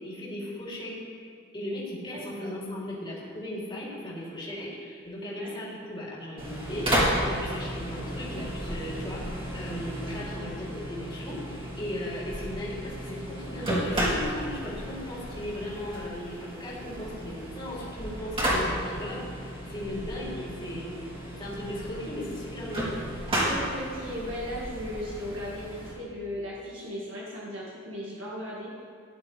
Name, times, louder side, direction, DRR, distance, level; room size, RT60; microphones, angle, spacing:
voice 1, 0.0-6.9 7.2-20.9 21.4-23.0, left 1 dB, 25° left, -7 dB, 3.5 m, -37 dB
voice 2, 2.1-2.5 5.4-5.6 10.1-10.2 23.4-28.7, equal, 70° right, -6 dB, 1.9 m, -37 dB
sound 1, 6.4-25.9, equal, 30° right, 3.3 m, -33 dB
16.5 x 10.5 x 3.5 m, 2.3 s
head